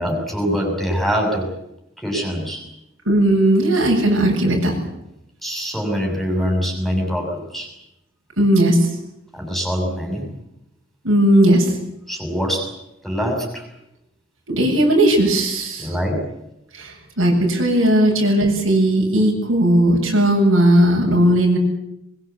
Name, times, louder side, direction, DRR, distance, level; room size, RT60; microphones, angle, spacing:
voice 1, 0.0-1.5 2.0-2.7 5.4-7.7 9.3-10.3 12.1-12.8 13.0-13.7 15.8-16.3 17.8-18.1, equal, ahead, 1 dB, 6.8 m, -24 dB
voice 2, 3.1-4.7 8.4-8.9 11.0-11.7 14.5-15.9 16.7-21.6, right 1 dB, 80° right, 0 dB, 7.9 m, -16 dB
23.5 x 22.0 x 8.3 m, 0.85 s
head